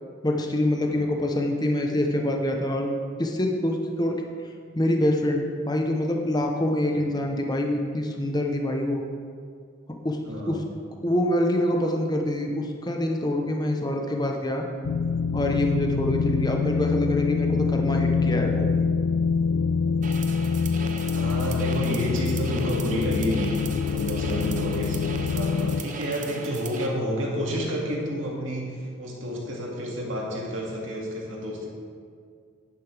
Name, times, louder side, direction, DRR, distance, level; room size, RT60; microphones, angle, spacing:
voice 1, 0.2-2.9 3.2-4.2 4.7-9.0 10.0-10.2 10.5-10.6 11.0-14.6 15.3-18.7, left 1 dB, 20° left, 2 dB, 0.8 m, -25 dB
voice 2, 10.2-10.6 21.1-23.5 23.9-31.7, equal, 70° right, -3 dB, 2.3 m, -30 dB
sound 1, 14.8-25.8, left 5 dB, 85° left, 0.4 m, -25 dB
sound 2, 20.0-26.9, right 5 dB, 35° right, 0.7 m, -39 dB
10.5 x 10.5 x 3.4 m, 2.1 s
head